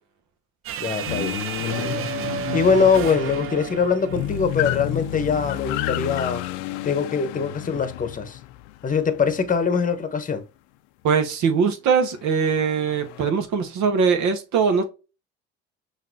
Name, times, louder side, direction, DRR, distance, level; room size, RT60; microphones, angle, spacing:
sound 1, 0.6-5.0, right 7 dB, 40° right, 0.5 m, -31 dB
voice 1, 0.8-2.0 2.5-6.4 6.8-8.4 8.8-10.4, left 6 dB, 25° left, 1.0 m, -23 dB
sound 2, 1.1-10.0 12.3-13.3, left 15 dB, 75° left, 0.5 m, -31 dB
voice 2, 11.0-14.8, right 6 dB, 60° right, 1.2 m, -21 dB
5.7 x 2.7 x 2.8 m
hypercardioid pair, 70°, 34 cm